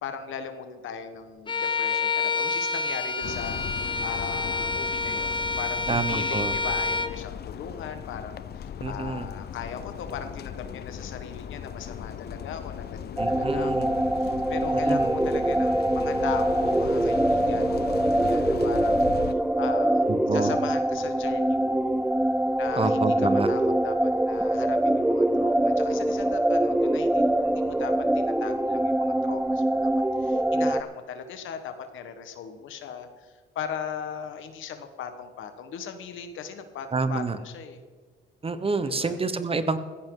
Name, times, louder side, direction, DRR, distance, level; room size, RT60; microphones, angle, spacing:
voice 1, 0.0-20.0 20.3-21.9 22.6-29.9 30.2-37.8 39.0-39.2, left 7 dB, 80° left, 7 dB, 1.5 m, -38 dB
Bowed string instrument, 1.5-7.2, left 4 dB, 25° left, 1.1 m, -28 dB
sound 1, 3.2-19.3, left 8 dB, 55° left, 0.7 m, -37 dB
voice 2, 5.9-6.5 8.8-9.3 13.2-13.9 14.9-15.1 20.3-20.5 22.8-23.5 36.9-37.4 38.4-39.8, right 3 dB, 30° right, 11 dB, 1.1 m, -27 dB
sound 2, 13.2-30.8, right 1 dB, 5° right, 0.5 m, -24 dB
15.5 x 14.5 x 3.9 m, 1.5 s
cardioid pair, 90°, 20 cm